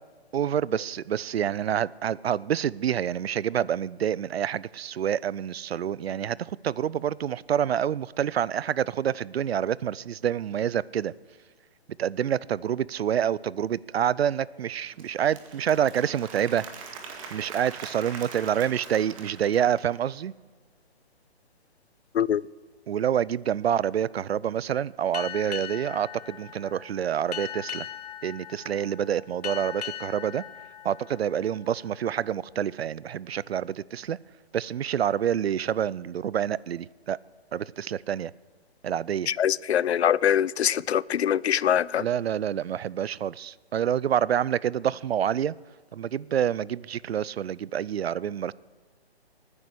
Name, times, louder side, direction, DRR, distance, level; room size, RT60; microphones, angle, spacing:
voice 1, 0.3-11.1 12.0-16.7 17.3-20.3 22.9-27.9 28.2-30.4 30.8-34.2 34.5-37.2 37.5-38.3 38.8-39.3 42.0-45.5 45.9-48.5, right 9 dB, 75° right, 0.5 m, -27 dB
Applause / Crowd, 14.7-20.1, right 5 dB, 30° right, 1.9 m, -43 dB
voice 2, 22.1-22.5 39.3-42.1, left 9 dB, 85° left, 0.5 m, -23 dB
Boat Water vehicle, 25.1-32.2, left 10 dB, 40° left, 0.7 m, -39 dB
20.5 x 9.8 x 6.3 m
hypercardioid pair, 155°, 31 cm